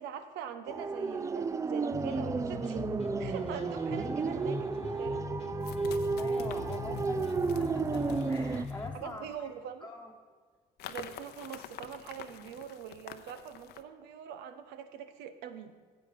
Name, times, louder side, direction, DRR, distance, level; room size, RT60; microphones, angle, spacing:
voice 1, 0.0-2.9 3.2-5.2 8.9-9.9 10.9-15.7, right 8 dB, 90° right, 9 dB, 1.0 m, -43 dB
sound 1, 0.7-8.7, right 4 dB, 20° right, 0.4 m, -32 dB
sound 2, 1.9-9.0, left 4 dB, 35° left, 1.2 m, -40 dB
sound 3, 4.2-4.3 5.6-9.5 10.8-13.8, left 10 dB, 75° left, 0.8 m, -48 dB
voice 2, 6.2-7.2 7.7-9.3 9.8-10.1, left 2 dB, 10° left, -2 dB, 1.2 m, -43 dB
14.0 x 8.0 x 5.9 m, 1.5 s
cardioid pair, 110°, 17 cm